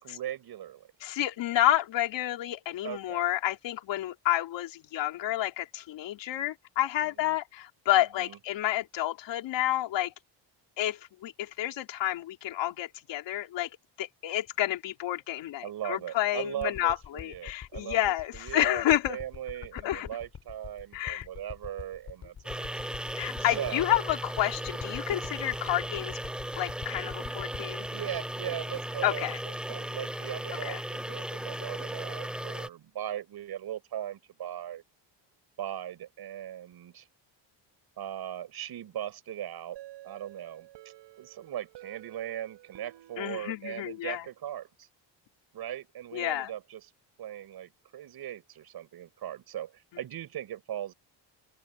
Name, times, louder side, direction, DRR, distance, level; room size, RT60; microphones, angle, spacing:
voice 1, 0.0-0.9 2.8-3.2 7.0-7.4 8.0-8.4 15.6-22.8 23.1-24.0 27.9-34.8 35.6-37.1 38.0-39.8 40.0-40.7 41.2-44.9 45.5-46.9 47.2-50.9, right 11 dB, 55° right, 6.7 m, -39 dB
voice 2, 1.0-10.1 10.8-13.7 14.0-19.2 19.7-20.1 20.9-21.3 23.2-26.2 26.6-27.9 29.0-29.4 30.6-30.8 43.2-44.2 46.1-46.5, left 13 dB, 75° left, 3.5 m, -30 dB
sound 1, 16.6-29.4 29.9-30.0, left 7 dB, 40° left, 6.1 m, -45 dB
sound 2, 22.4-32.7, right 1 dB, ahead, 0.5 m, -36 dB
sound 3, 39.8-44.4, right 15 dB, 70° right, 5.5 m, -52 dB
open air
cardioid pair, 140°, 45 cm